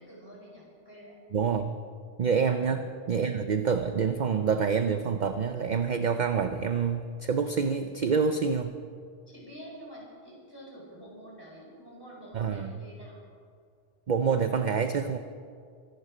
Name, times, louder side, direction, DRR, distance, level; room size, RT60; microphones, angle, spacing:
voice 1, 0.0-1.2 9.3-13.3, equal, 20° left, -4 dB, 5.2 m, -47 dB
voice 2, 1.3-1.8 2.2-8.7 12.3-12.7 14.1-15.2, right 6 dB, 50° right, 8 dB, 0.6 m, -27 dB
24.0 x 11.0 x 5.0 m, 2.2 s
omnidirectional pair, 1.2 m